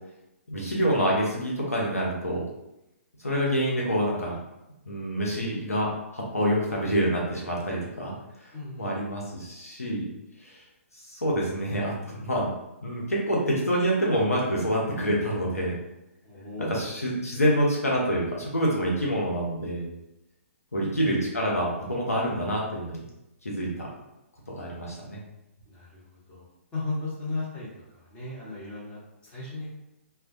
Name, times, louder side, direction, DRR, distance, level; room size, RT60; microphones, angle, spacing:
voice 1, 0.5-2.4 3.2-4.3 4.9-8.1 8.8-10.1 11.1-12.5 12.8-15.8 16.6-19.9 20.7-23.0 23.4-23.9 24.6-25.2, equal, 90° left, -4 dB, 0.7 m, -27 dB
voice 2, 8.5-8.9 16.2-16.7 20.8-21.1 25.7-26.0 26.3-26.5 26.7-27.7 27.9-29.7, left 2 dB, 15° left, -8 dB, 0.9 m, -35 dB
2.2 x 2.1 x 2.6 m, 0.91 s
figure-of-eight pair, 130°, 8 cm